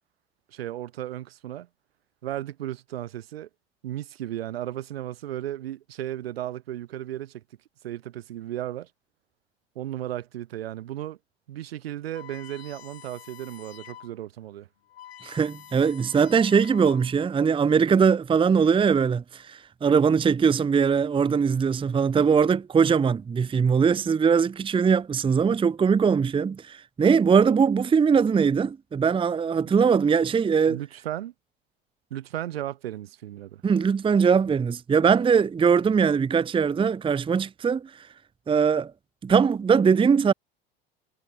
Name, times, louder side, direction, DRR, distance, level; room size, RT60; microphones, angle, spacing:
voice 1, 0.5-1.7 2.2-3.5 3.8-7.4 7.8-8.9 9.7-11.2 11.5-14.7 30.7-31.3 32.1-33.6, right 13 dB, 75° right, 2.6 m, -35 dB
sound 1, 12.1-14.2 14.5-14.6 14.8-17.3, left 12 dB, 75° left, 5.9 m, -47 dB
voice 2, 15.2-30.8 33.6-38.1 38.5-38.9 39.2-40.3, right 6 dB, 15° right, 0.8 m, -21 dB
hypercardioid pair, 75°, 30 cm